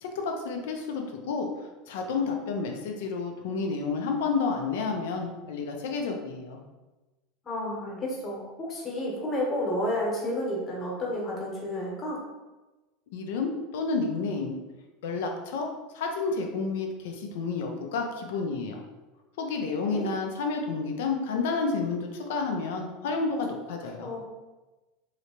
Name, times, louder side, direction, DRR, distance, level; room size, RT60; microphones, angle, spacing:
voice 1, 0.0-6.6 13.1-14.6 15.0-15.7 15.9-18.8 19.4-24.1, left 4 dB, 60° left, 3 dB, 0.5 m, -30 dB
voice 2, 7.4-12.2 19.9-20.1 24.0-24.2, left 1 dB, 30° left, -3 dB, 1.2 m, -31 dB
3.2 x 2.8 x 2.9 m, 1.1 s
figure-of-eight pair, 75°, 0 cm